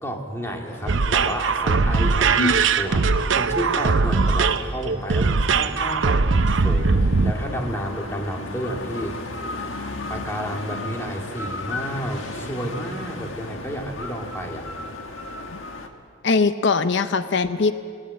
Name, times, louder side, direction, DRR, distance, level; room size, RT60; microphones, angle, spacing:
voice 1, 0.0-3.1 3.3-9.2 10.1-14.7, equal, 15° left, 1 dB, 2.1 m, -31 dB
sound 1, 0.7-15.9, left 2 dB, 85° left, 1.6 m, -36 dB
sound 2, 0.9-7.3, right 4 dB, 75° right, 0.7 m, -20 dB
voice 2, 16.2-17.7, left 4 dB, 65° left, 11 dB, 0.6 m, -21 dB
19.5 x 18.0 x 7.6 m, 2.4 s
head